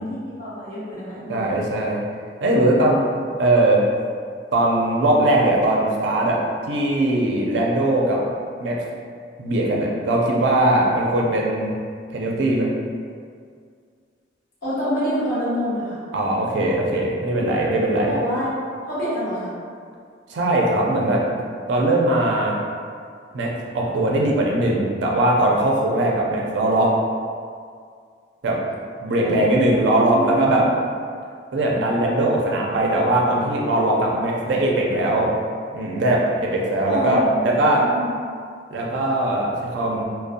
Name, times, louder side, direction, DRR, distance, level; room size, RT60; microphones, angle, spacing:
voice 1, 0.0-1.5 14.6-16.0 18.1-18.5 18.9-19.5 29.2-29.8 30.1-30.6 36.9-38.1, equal, 45° left, -12 dB, 1.2 m, -27 dB
voice 2, 1.3-2.0 2.4-3.0 3.4-3.8 4.5-6.4 6.7-8.2 8.6-8.8 9.4-11.7 12.1-12.7 16.1-18.2 20.3-21.2 21.7-22.6 23.3-26.9 28.4-28.6 29.0-30.7 31.5-35.3 35.7-37.9 38.7-40.0, right 1 dB, 75° right, -2 dB, 0.4 m, -20 dB
2.6 x 2.0 x 2.5 m, 2.1 s
head